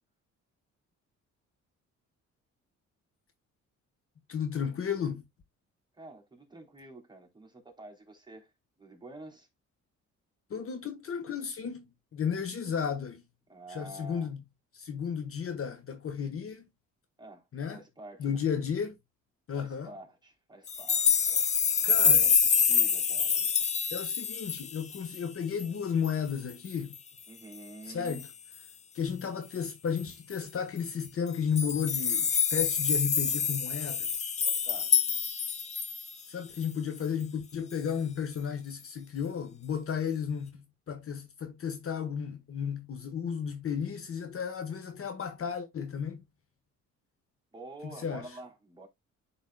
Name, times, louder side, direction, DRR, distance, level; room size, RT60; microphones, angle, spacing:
voice 1, 4.3-5.2 10.5-11.9 12.1-13.2 13.7-14.4 14.7-16.7 17.5-17.8 18.2-18.9 19.5-19.9 21.8-22.2 23.9-27.0 27.9-28.2 28.9-34.1 36.3-46.2 48.0-48.2, left 7 dB, 45° left, 1.2 m, -33 dB
voice 2, 5.9-8.5 8.8-9.5 13.5-14.3 17.2-17.4 17.7-18.4 19.5-21.5 22.0-23.5 27.3-28.3 34.6-34.9 47.5-48.9, right 2 dB, 15° right, 3.1 m, -48 dB
sound 1, 20.7-25.2 25.6-25.7 26.0-26.1 26.5-27.0 28.1-28.3 30.0-30.1 30.3-30.4 31.3-36.1 36.6-36.7, left 6 dB, 25° left, 0.4 m, -27 dB
12.0 x 4.1 x 2.2 m
cardioid pair, 90°, 30 cm